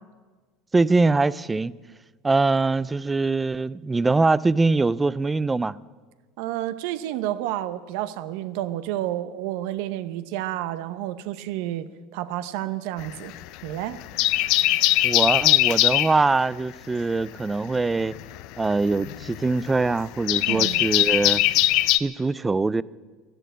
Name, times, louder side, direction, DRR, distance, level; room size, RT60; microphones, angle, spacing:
voice 1, 0.7-1.7 2.2-5.8 15.0-18.2 18.6-21.4 22.0-22.8, right 3 dB, 15° right, 0.3 m, -23 dB
voice 2, 6.4-11.9 12.1-13.3 13.6-14.0 20.5-20.8, right 13 dB, 70° right, 0.9 m, -30 dB
sound 1, 13.0-13.7 14.0-16.2 17.8-22.0, left 17 dB, 65° left, 0.5 m, -21 dB
13.0 x 12.0 x 8.1 m
supercardioid pair, 125°, 0 cm